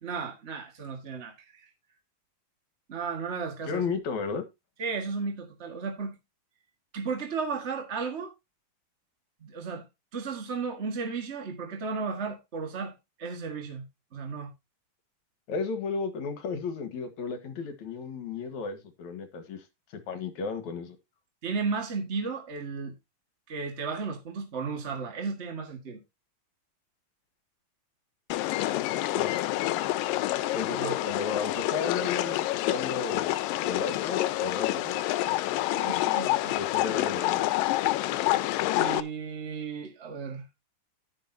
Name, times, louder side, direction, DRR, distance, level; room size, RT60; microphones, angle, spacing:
voice 1, 0.0-1.7 2.9-3.9 4.8-6.2 6.9-8.3 9.4-9.9 10.1-13.9 14.1-14.5 21.4-23.0 23.5-26.0 30.7-30.9 35.7-36.6 38.7-40.5, right 5 dB, 40° right, 1.0 m, -34 dB
voice 2, 3.7-4.4 15.5-19.6 20.1-21.0 29.1-29.3 30.5-33.4 33.6-35.0 35.8-36.0 36.5-37.4, left 5 dB, 65° left, 2.6 m, -34 dB
sound 1, 28.3-39.0, left 16 dB, 85° left, 2.4 m, -28 dB
11.0 x 10.5 x 2.7 m
omnidirectional pair, 3.9 m